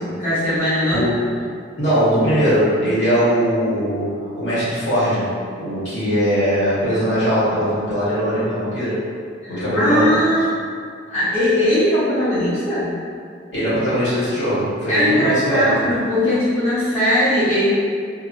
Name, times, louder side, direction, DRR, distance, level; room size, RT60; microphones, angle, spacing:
voice 1, 0.2-1.1 9.4-10.4 11.1-12.9 14.9-17.7, equal, 35° left, -14 dB, 0.8 m, -19 dB
voice 2, 0.9-1.2 1.8-9.0 9.5-10.1 13.5-15.9, equal, 75° left, -12 dB, 1.4 m, -20 dB
2.7 x 2.6 x 2.5 m, 2.2 s
head